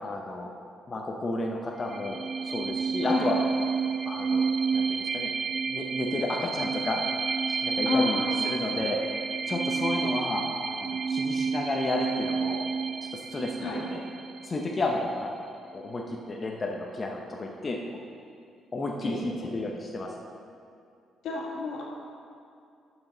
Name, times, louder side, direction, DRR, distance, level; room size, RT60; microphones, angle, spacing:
voice 1, 0.0-0.5 0.9-2.2 2.4-3.3 4.1-5.3 5.7-7.0 7.5-9.0 9.5-12.6 13.1-14.0 14.4-17.8 18.7-20.1, left 2 dB, 30° left, 0 dB, 0.8 m, -32 dB
sound 1, 1.8-15.2, right 5 dB, 45° right, 0.4 m, -30 dB
voice 2, 7.8-8.4 13.6-13.8 19.0-19.2 21.2-21.8, left 3 dB, 75° left, -2 dB, 1.8 m, -29 dB
11.5 x 6.2 x 3.9 m, 2.5 s
cardioid pair, 90°, 0 cm